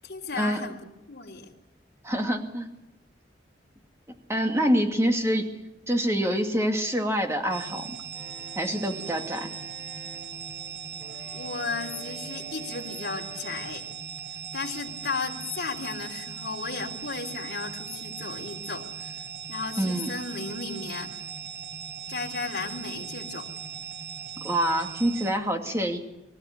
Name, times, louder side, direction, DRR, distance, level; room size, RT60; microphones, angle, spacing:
voice 1, 0.0-1.5 11.3-13.9 14.5-19.2 19.5-21.2 22.1-23.5, left 4 dB, 65° left, 1 dB, 3.4 m, -35 dB
voice 2, 2.0-2.7 4.3-5.5 5.9-8.0 8.6-9.5 19.8-20.1 24.4-26.0, equal, 15° right, 3 dB, 2.4 m, -26 dB
sound 1, 7.5-25.3, right 7 dB, 75° right, 7.2 m, -39 dB
sound 2, 8.1-13.6, left 1 dB, 40° right, 6.6 m, -48 dB
24.0 x 14.5 x 9.9 m, 0.94 s
head